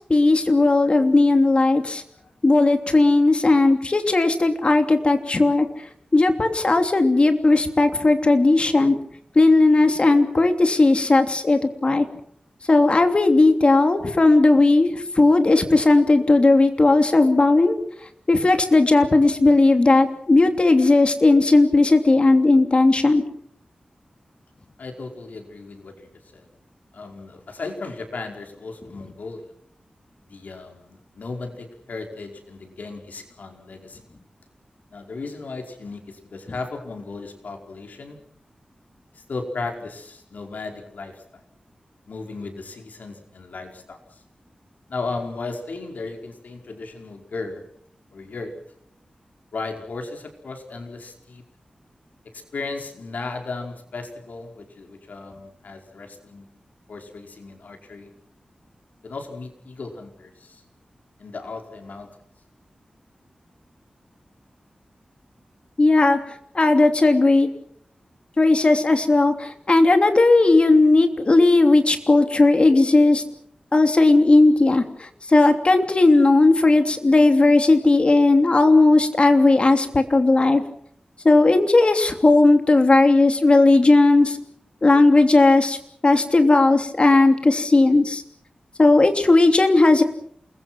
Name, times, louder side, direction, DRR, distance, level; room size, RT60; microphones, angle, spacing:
voice 1, 0.1-2.0 2.4-5.7 6.1-8.9 9.3-12.0 12.7-17.8 18.3-23.2 65.8-66.2 66.5-67.5 68.4-73.2 73.7-80.6 81.2-84.4 84.8-85.8 86.0-88.2 88.8-90.0, left 2 dB, 40° left, 7 dB, 3.0 m, -16 dB
voice 2, 24.8-26.4 26.9-29.5 30.2-34.0 34.9-38.2 39.1-41.4 42.1-44.2 44.9-47.6 48.1-48.6 49.5-51.4 52.3-56.4 56.9-58.1 59.0-60.6 61.2-62.1, left 3 dB, 85° left, 3 dB, 5.1 m, -35 dB
28.5 x 21.5 x 6.2 m, 0.65 s
wide cardioid pair, 95°, 3 cm